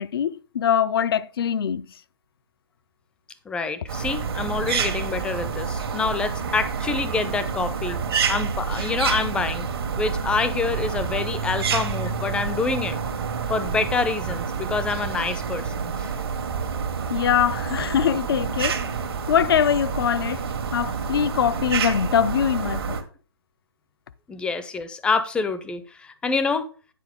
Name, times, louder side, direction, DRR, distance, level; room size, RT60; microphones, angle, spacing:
voice 1, 0.0-2.0 17.1-18.8 19.3-20.4 20.7-23.0, left 8 dB, 65° left, 0.6 m, -23 dB
voice 2, 3.5-8.0 8.3-9.7 10.0-13.0 13.5-16.1 24.3-26.7, left 4 dB, 5° left, 0.6 m, -26 dB
sound 1, 3.9-23.0, right 6 dB, 70° right, 1.6 m, -28 dB
9.4 x 4.6 x 5.1 m
hypercardioid pair, 145°, 13 cm